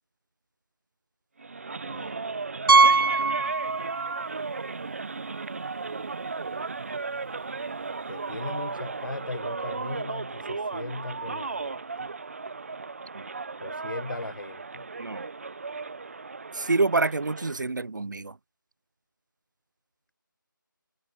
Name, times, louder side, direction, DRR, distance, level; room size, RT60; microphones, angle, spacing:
sound 1, 1.4-17.6, right 4 dB, 40° right, 1.2 m, -35 dB
voice 1, 1.7-2.2 8.1-12.1 13.6-14.9, left 2 dB, 70° left, 7.1 m, -38 dB
Piano, 2.7-4.3 4.6-4.7 5.3-5.4 5.6-5.7 7.8-7.9, right 4 dB, 80° right, 0.5 m, -21 dB
voice 2, 16.6-18.3, right 3 dB, 60° right, 0.9 m, -27 dB
figure-of-eight pair, 170°, 11 cm